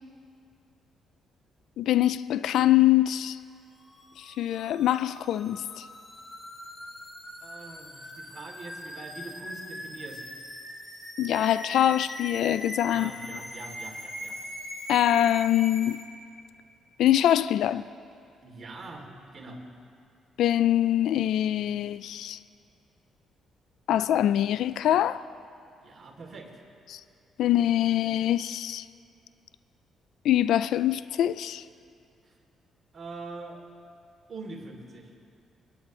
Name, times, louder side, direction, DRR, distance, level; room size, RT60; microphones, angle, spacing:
voice 1, 1.8-3.4 4.2-5.8 11.2-13.1 14.9-16.0 17.0-17.8 20.4-22.4 23.9-25.2 26.9-27.0 27.4-28.8 30.2-31.6, left 12 dB, 80° left, 0.3 m, -24 dB
sound 1, 3.7-16.0, left 1 dB, 25° left, 3.1 m, -41 dB
voice 2, 7.4-10.3 12.9-14.4 18.4-19.6 25.8-26.6 32.2-32.4 32.9-33.6 34.3-35.1, right 3 dB, 40° right, 2.8 m, -43 dB
28.0 x 10.5 x 3.1 m
cardioid pair, 90°, 0 cm